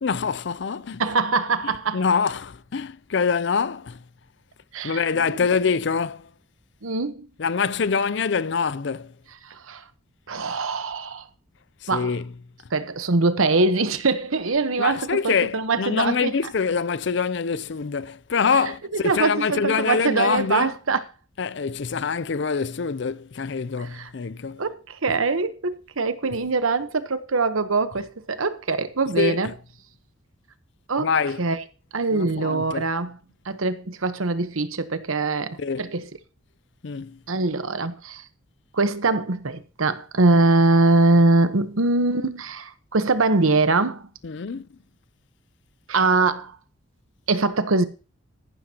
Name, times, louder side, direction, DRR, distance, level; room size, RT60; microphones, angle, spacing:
voice 1, 0.0-1.0 1.9-4.0 4.8-6.3 7.4-9.1 11.8-12.3 14.8-20.7 21.4-24.6 29.2-29.4 31.0-31.4 32.1-32.9 35.6-35.9 36.8-37.2 44.2-44.7, left 5 dB, 60° left, 0.5 m, -25 dB
voice 2, 1.0-2.0 4.7-5.3 6.8-7.3 9.4-9.9 10.3-11.3 11.9-12.1 12.7-16.3 18.9-21.0 23.8-24.1 24.6-29.5 30.9-31.1 31.4-31.6 31.9-33.1 33.4-36.1 37.3-38.3 38.7-44.1 45.9-46.6 47.3-47.8, right 3 dB, 90° right, 1.1 m, -23 dB
14.5 x 11.5 x 2.9 m
head